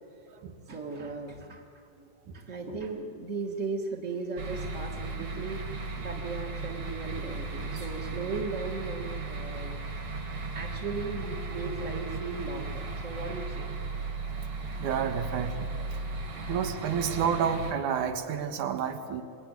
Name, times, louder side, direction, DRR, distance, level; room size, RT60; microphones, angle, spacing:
voice 1, 0.6-2.1 2.3-13.7 15.7-15.8 16.1-16.2, right 4 dB, 30° right, -3 dB, 1.5 m, -37 dB
sound 1, 4.4-17.7, right 3 dB, 55° right, 3.7 m, -36 dB
voice 2, 14.8-15.7 16.5-19.2, right 7 dB, 85° right, 7 dB, 3.0 m, -30 dB
26.5 x 20.5 x 9.6 m, 2.6 s
omnidirectional pair, 3.4 m